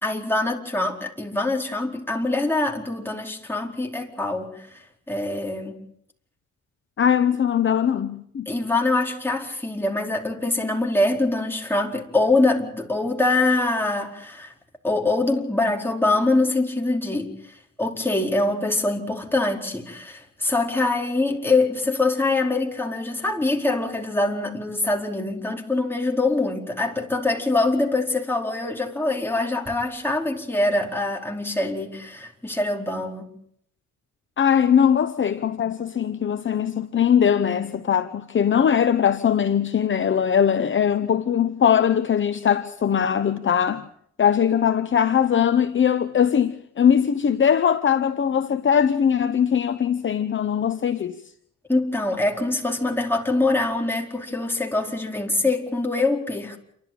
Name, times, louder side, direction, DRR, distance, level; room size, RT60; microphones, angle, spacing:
voice 1, 0.0-4.6 5.1-5.8 8.5-14.5 14.8-17.4 17.8-33.3 51.7-56.6, left 2 dB, 5° left, 4.5 m, -24 dB
voice 2, 7.0-8.5 34.4-43.8 44.2-51.2, left 8 dB, 40° left, 1.0 m, -21 dB
29.0 x 12.5 x 8.9 m
cardioid pair, 90°, 30 cm